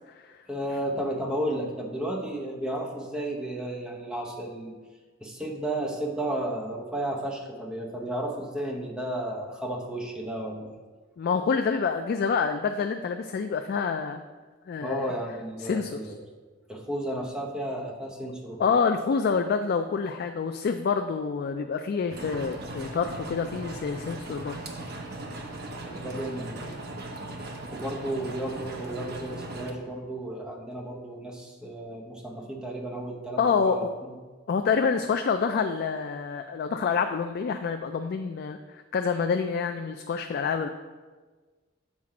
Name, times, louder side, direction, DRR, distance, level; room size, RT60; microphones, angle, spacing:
voice 1, 0.5-4.7 5.2-10.7 14.8-16.2 16.7-18.6 25.8-26.7 27.7-33.8, right 1 dB, 5° right, -2 dB, 0.8 m, -33 dB
voice 2, 11.2-14.2 14.7-15.1 15.6-16.1 18.6-24.6 33.4-33.9 34.5-40.7, left 5 dB, 50° left, 6 dB, 0.3 m, -27 dB
sound 1, 22.1-29.7, right 1 dB, 50° right, 0.8 m, -38 dB
7.4 x 4.2 x 4.8 m, 1.4 s
head